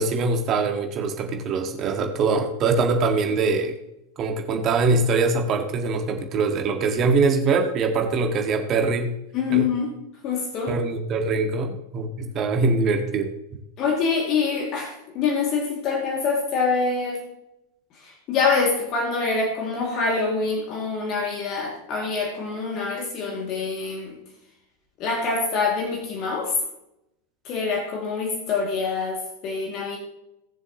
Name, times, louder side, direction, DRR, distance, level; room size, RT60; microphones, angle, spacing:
voice 1, 0.0-3.7 4.2-9.2 9.5-9.6 10.7-13.3, right 4 dB, 30° right, 4 dB, 1.8 m, -23 dB
voice 2, 9.3-9.9 10.2-10.7 13.8-17.2 18.0-24.2 25.0-26.5 27.5-30.0, left 4 dB, 35° left, 0 dB, 2.4 m, -25 dB
18.5 x 7.1 x 3.0 m, 0.84 s
figure-of-eight pair, 90°, 0 cm